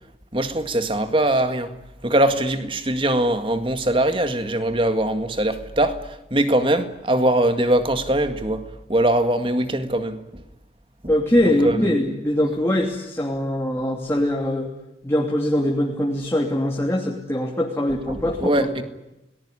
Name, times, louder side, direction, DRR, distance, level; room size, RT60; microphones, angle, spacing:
voice 1, 0.3-1.7 2.0-8.6 8.9-10.4 11.6-11.8 18.1-18.8, right 1 dB, 30° right, 1.9 m, -21 dB
voice 2, 11.1-14.7 15.0-18.7, left 1 dB, 15° left, 2.9 m, -22 dB
30.0 x 19.5 x 9.9 m
head